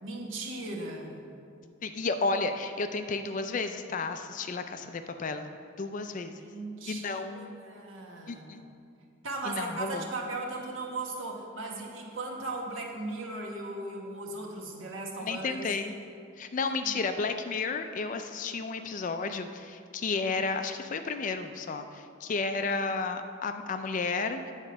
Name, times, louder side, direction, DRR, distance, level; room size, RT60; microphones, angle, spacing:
voice 1, 0.0-1.2 6.4-8.6 9.2-15.6 16.8-16.9, right 2 dB, 65° right, 0 dB, 1.2 m, -37 dB
voice 2, 1.8-5.5 5.8-6.5 6.9-7.5 8.3-8.6 9.5-10.0 15.2-15.9 16.4-24.5, left 4 dB, 35° left, 8 dB, 0.3 m, -32 dB
8.7 x 4.5 x 6.1 m, 2.4 s
head